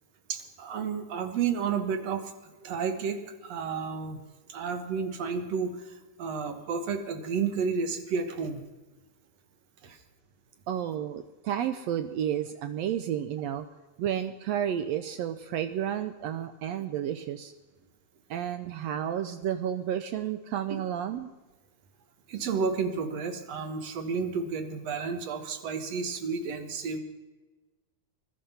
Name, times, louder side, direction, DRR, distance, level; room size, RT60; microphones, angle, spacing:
voice 1, 0.3-4.2 4.5-8.6 9.8-10.0 20.7-20.8 22.3-27.0, right 5 dB, 60° right, 7 dB, 2.2 m, -31 dB
voice 2, 10.7-13.7 14.0-17.5 18.3-21.3, right 10 dB, 80° right, 10 dB, 1.5 m, -31 dB
21.0 x 11.5 x 5.6 m, 1.2 s
omnidirectional pair, 3.6 m